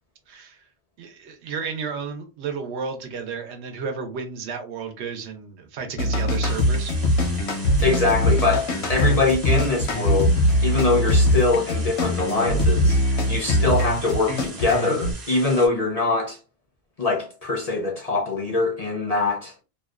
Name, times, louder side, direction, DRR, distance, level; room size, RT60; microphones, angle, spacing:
voice 1, 0.3-0.6 1.0-7.0, right 5 dB, 85° right, 0.9 m, -32 dB
sound 1, 6.0-15.1, equal, 80° left, 0.9 m, -21 dB
sound 2, 6.5-15.7, right 3 dB, 55° right, 0.9 m, -41 dB
voice 2, 7.8-16.4 17.0-19.5, left 3 dB, 50° left, 0.5 m, -23 dB
2.6 x 2.1 x 2.2 m
omnidirectional pair, 1.1 m